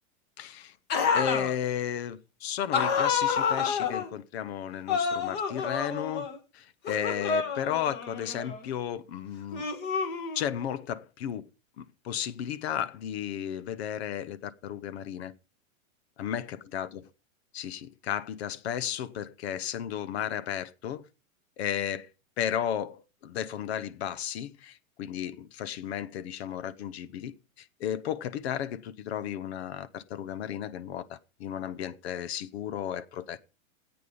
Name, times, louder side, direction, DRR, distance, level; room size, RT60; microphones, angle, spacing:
voice 1, 0.4-0.7 1.1-6.3 6.5-9.7 10.3-11.5 11.8-15.3 16.2-17.0 17.5-21.0 21.6-22.1 22.4-33.4, left 9 dB, 50° left, 0.9 m, -34 dB
sound 1, 0.9-1.5 2.7-4.1 4.9-6.4 6.8-8.6 9.5-10.6, left 6 dB, 25° left, 1.6 m, -29 dB
13.5 x 8.8 x 5.1 m
supercardioid pair, 170°, 42 cm